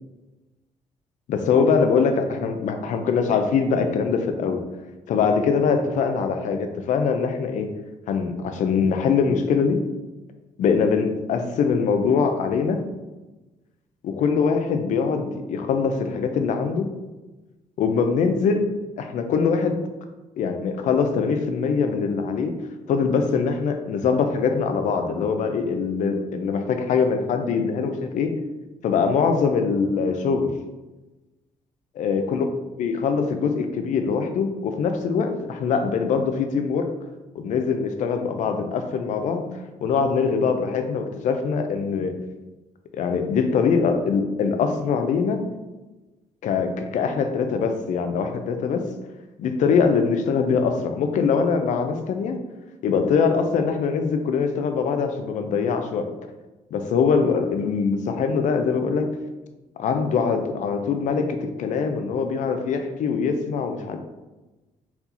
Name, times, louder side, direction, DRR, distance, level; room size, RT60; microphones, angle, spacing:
voice 1, 1.3-4.6 5.1-7.7 8.1-9.8 10.6-12.8 14.0-16.9 17.8-18.7 19.0-19.8 20.4-22.5 22.9-28.3 28.8-30.5 32.0-32.4 32.8-36.9 37.3-39.4 39.8-42.1 42.9-45.4 46.4-48.9 49.4-52.4 52.8-56.1 56.7-59.1 59.8-64.0, left 5 dB, 70° left, 7 dB, 0.6 m, -23 dB
4.3 x 4.2 x 2.7 m, 1.1 s
cardioid pair, 85°, 13 cm